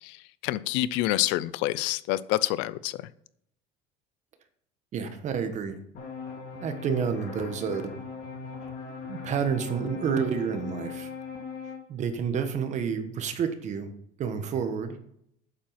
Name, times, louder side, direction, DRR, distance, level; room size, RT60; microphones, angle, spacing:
voice 1, 0.0-3.0, left 16 dB, 65° left, 17 dB, 0.6 m, -27 dB
voice 2, 4.9-5.8 6.6-7.9 9.0-11.1 11.9-13.9 14.2-15.0, right 6 dB, 35° right, 8 dB, 1.4 m, -29 dB
sound 1, 5.9-11.8, left 5 dB, 50° left, 2.9 m, -39 dB
8.6 x 7.5 x 5.8 m, 0.71 s
cardioid pair, 150°, 20 cm